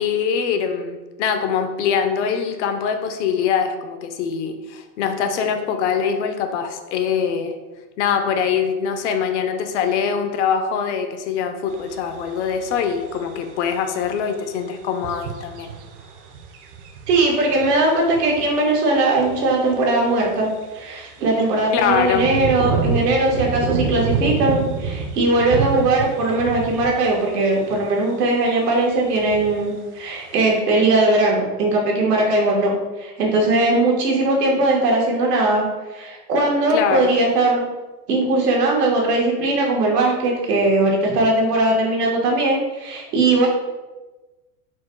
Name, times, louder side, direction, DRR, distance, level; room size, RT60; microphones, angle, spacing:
voice 1, 0.0-7.5 8.0-15.7 21.7-22.2 36.7-37.1, left 7 dB, 50° left, 6 dB, 0.5 m, -23 dB
sound 1, 11.7-27.8 28.1-28.2 28.5-29.8 30.3-30.4, right 6 dB, 50° right, 0.6 m, -29 dB
voice 2, 17.1-20.5 20.7-32.7 33.0-35.6 35.9-37.6 38.1-43.5, right 2 dB, 90° right, -2 dB, 1.5 m, -19 dB
4.5 x 2.3 x 4.4 m, 1.2 s
supercardioid pair, 145°, 46 cm